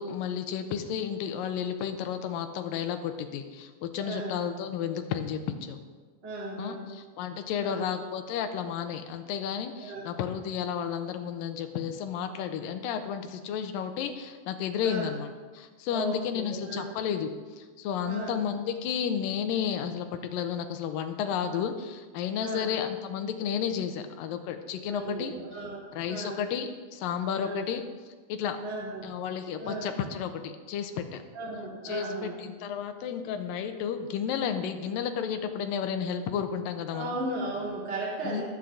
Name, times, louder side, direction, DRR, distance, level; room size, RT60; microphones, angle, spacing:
voice 1, 0.0-5.8 6.6-25.3 25.9-27.8 28.3-28.6 29.0-31.2 31.8-37.1 38.2-38.4, left 8 dB, 80° left, 7 dB, 2.2 m, -32 dB
voice 2, 4.0-4.4 6.2-6.9 7.6-7.9 9.8-10.0 14.8-15.1 15.9-16.9 18.0-18.4 22.4-22.7 24.9-25.8 26.1-26.4 27.4-27.6 28.6-29.1 29.6-29.9 31.3-32.3 36.9-38.4, right 2 dB, 20° right, -5 dB, 2.7 m, -36 dB
21.5 x 7.3 x 3.8 m, 1.4 s
omnidirectional pair, 4.6 m